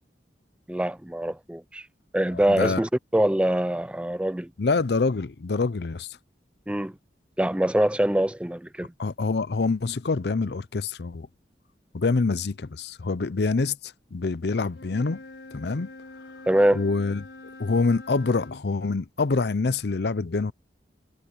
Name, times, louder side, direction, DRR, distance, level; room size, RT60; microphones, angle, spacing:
voice 1, 0.7-1.8 2.1-4.5 6.7-6.9 7.4-8.9 16.5-16.8, right 1 dB, 5° right, 0.5 m, -24 dB
voice 2, 2.3-2.8 4.6-6.2 9.0-11.3 11.9-15.2 15.5-15.9 16.7-17.3 17.6-20.5, left 3 dB, 65° left, 0.6 m, -26 dB
Wind instrument woodwind instrument, 14.7-18.6, left 2 dB, 85° left, 5.1 m, -45 dB
head